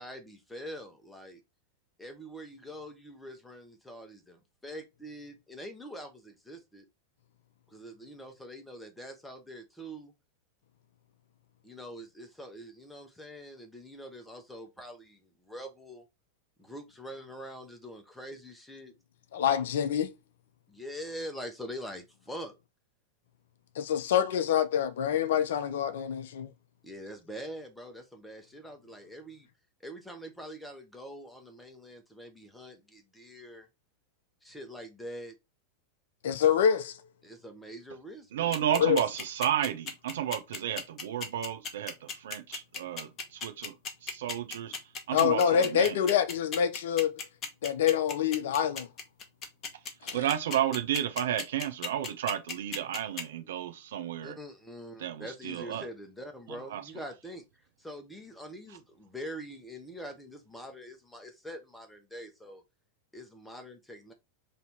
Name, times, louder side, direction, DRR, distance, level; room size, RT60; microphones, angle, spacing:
voice 1, 0.0-1.4 2.0-6.8 7.7-10.1 11.6-16.0 16.6-18.9 20.7-22.6 26.8-29.5 29.8-33.7 34.4-35.3 37.2-38.6 54.2-57.4 57.8-62.6 63.1-64.1, equal, 5° left, 0.9 m, -44 dB
voice 2, 19.3-20.1 23.8-26.5 36.2-37.0 38.7-39.0 45.1-47.1 47.6-48.9 50.0-50.2, left 8 dB, 60° left, 0.4 m, -26 dB
voice 3, 38.3-43.7 44.0-44.7 45.1-46.0 50.1-54.4 55.0-55.8 56.5-56.8, right 11 dB, 60° right, 0.6 m, -32 dB
sound 1, 38.5-53.2, left 5 dB, 30° left, 0.9 m, -36 dB
3.3 x 2.8 x 4.1 m
figure-of-eight pair, 90°, 0 cm